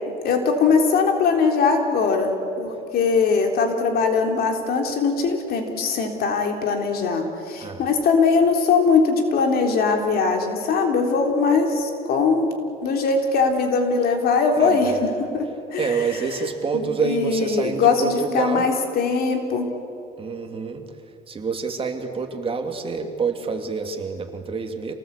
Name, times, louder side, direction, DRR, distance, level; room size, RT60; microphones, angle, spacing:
voice 1, 0.2-14.9 15.3-15.9 16.7-19.7, left 4 dB, 65° left, 3 dB, 3.5 m, -21 dB
voice 2, 7.6-7.9 14.6-15.1 15.8-18.7 20.2-20.9 21.3-24.9, right 4 dB, 35° right, 5 dB, 2.5 m, -27 dB
28.0 x 18.5 x 8.3 m, 2.6 s
cardioid pair, 110°, 17 cm